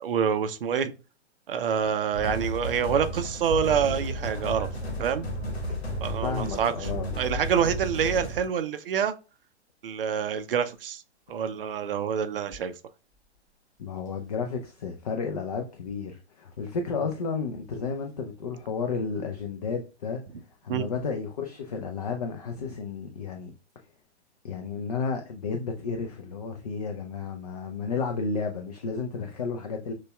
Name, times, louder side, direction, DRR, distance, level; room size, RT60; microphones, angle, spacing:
voice 1, 0.0-0.9 1.5-4.7 5.0-5.3 6.0-6.9 7.2-9.1 9.8-11.0 11.3-12.7 20.7-20.8, right 7 dB, 55° right, 0.5 m, -27 dB
sound 1, 2.1-8.5, right 1 dB, 65° left, 1.1 m, -33 dB
sound 2, 3.5-7.6 8.3-8.6 10.4-10.8 12.5-12.6 13.1-13.5 14.0-14.2 15.7-16.0 17.7-17.9 19.4-19.5 21.0-21.1 21.7-21.8, left 3 dB, 10° right, 1.3 m, -41 dB
voice 2, 6.2-7.1 13.8-20.2 20.6-23.5 24.4-29.9, left 5 dB, 35° left, 0.4 m, -32 dB
6.3 x 2.3 x 2.2 m
figure-of-eight pair, 120°, 35 cm